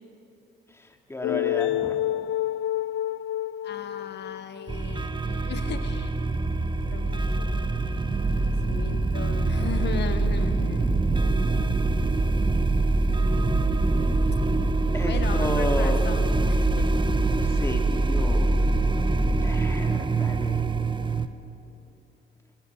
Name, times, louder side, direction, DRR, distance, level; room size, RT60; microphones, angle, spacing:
voice 1, 0.8-2.0 14.9-16.0 17.3-18.6 19.4-20.6, left 1 dB, 15° left, 3 dB, 2.6 m, -32 dB
sound 1, 1.2-5.0, left 13 dB, 75° left, 0.5 m, -28 dB
voice 2, 3.6-6.2 6.9-10.9 15.1-16.9, left 7 dB, 60° left, 8 dB, 1.3 m, -37 dB
sound 2, 4.7-21.3, right 2 dB, 25° right, 1.1 m, -24 dB
19.0 x 18.5 x 8.7 m, 2.8 s
cardioid pair, 90°, 20 cm